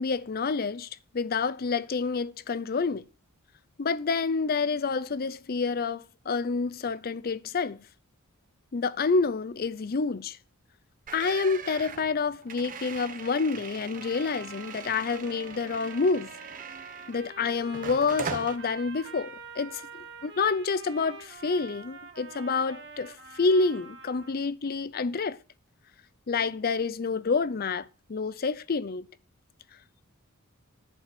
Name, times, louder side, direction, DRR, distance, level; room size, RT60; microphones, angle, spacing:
voice 1, 0.0-3.1 3.8-7.8 8.7-10.4 11.1-16.3 17.1-25.4 26.3-29.1, left 4 dB, 40° left, 0.5 m, -28 dB
sound 1, 11.1-17.3 17.7-18.6, right 6 dB, 35° right, 0.8 m, -41 dB
Trumpet, 13.9-24.4, right 4 dB, 55° right, 1.7 m, -46 dB
10.5 x 5.5 x 6.0 m
head